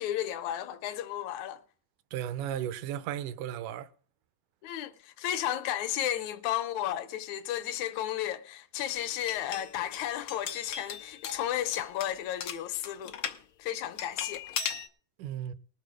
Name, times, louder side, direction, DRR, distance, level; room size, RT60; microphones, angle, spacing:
voice 1, 0.0-1.6 4.6-13.1 13.6-14.4, left 11 dB, 70° left, 2.0 m, -33 dB
voice 2, 2.1-3.9 15.2-15.5, right 10 dB, 80° right, 2.2 m, -35 dB
sound 1, 9.0-13.4 14.0-14.9, left 8 dB, 90° left, 1.1 m, -38 dB
20.0 x 6.7 x 4.9 m
omnidirectional pair, 3.7 m